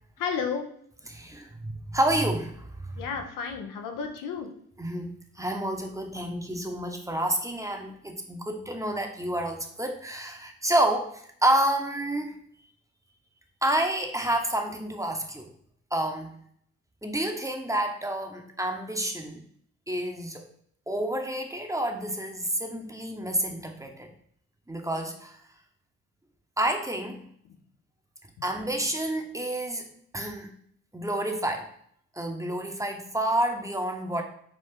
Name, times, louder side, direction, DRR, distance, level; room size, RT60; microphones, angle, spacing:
voice 1, 0.2-0.7 3.0-4.5 27.5-27.6, left 6 dB, 75° left, 4 dB, 0.8 m, -32 dB
voice 2, 1.1-3.1 4.8-12.4 13.6-15.5 15.9-16.4 17.0-19.4 19.9-20.5 20.9-24.1 24.7-25.4 26.6-27.2 28.4-30.5 30.9-31.7 32.2-34.2, right 1 dB, 10° right, 3 dB, 0.8 m, -29 dB
5.8 x 2.4 x 3.7 m, 0.65 s
supercardioid pair, 55°, 33 cm